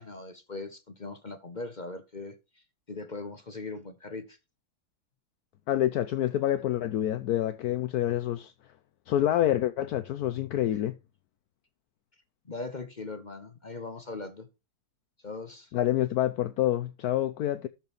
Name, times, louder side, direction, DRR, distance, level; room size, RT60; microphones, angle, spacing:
voice 1, 0.0-2.3 2.9-4.4 12.4-14.5 15.2-15.7, left 3 dB, 35° left, 0.7 m, -40 dB
voice 2, 5.7-8.5 9.1-11.0 15.7-17.7, left 12 dB, 70° left, 1.0 m, -27 dB
13.0 x 4.5 x 5.3 m
omnidirectional pair, 2.1 m